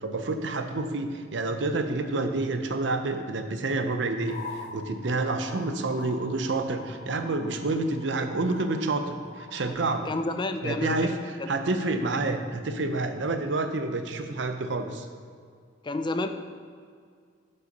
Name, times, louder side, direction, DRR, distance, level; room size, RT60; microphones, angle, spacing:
voice 1, 0.0-10.1 10.6-15.1, right 2 dB, 70° right, 7 dB, 0.7 m, -28 dB
sound 1, 4.2-9.7, left 3 dB, 55° left, 0.9 m, -45 dB
voice 2, 10.1-11.5 15.8-16.3, left 2 dB, 25° left, 8 dB, 0.4 m, -30 dB
8.2 x 5.5 x 5.4 m, 2.1 s
head